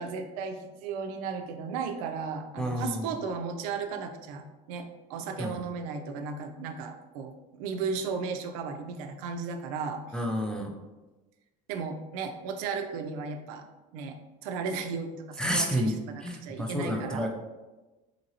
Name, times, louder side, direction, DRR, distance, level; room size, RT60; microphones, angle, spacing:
voice 1, 0.0-10.0 11.7-13.7 13.9-14.1 14.4-17.3, right 5 dB, 85° right, 5 dB, 0.4 m, -35 dB
voice 2, 2.6-3.0 5.4-5.6 10.1-10.7 15.4-17.3, equal, 5° left, 1 dB, 0.3 m, -30 dB
2.8 x 2.8 x 2.7 m, 1.2 s
supercardioid pair, 120°, 18 cm